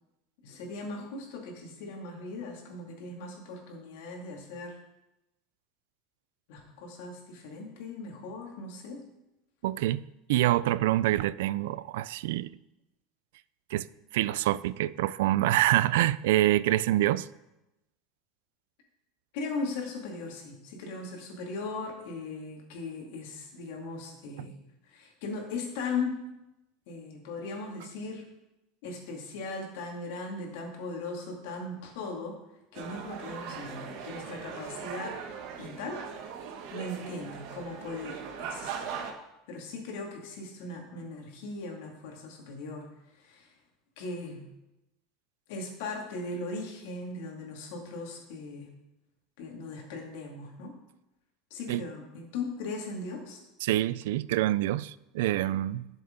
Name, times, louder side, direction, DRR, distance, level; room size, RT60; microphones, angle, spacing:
voice 1, 0.4-4.8 6.5-9.0 19.3-24.6 24.8-26.2 26.9-28.2 28.8-32.4 32.7-35.2 35.6-36.0 36.7-39.1 39.5-43.5 44.0-44.5 45.5-48.7 49.4-50.7 51.5-53.4, left 3 dB, 70° left, 2.4 m, -38 dB
voice 2, 9.6-12.5 13.7-13.9 14.1-17.3 51.7-51.8 53.6-55.9, right 15 dB, 80° right, 0.3 m, -26 dB
sound 1, 32.7-39.1, right 7 dB, 60° right, 1.3 m, -40 dB
12.0 x 6.9 x 3.9 m
supercardioid pair, 165°, 0 cm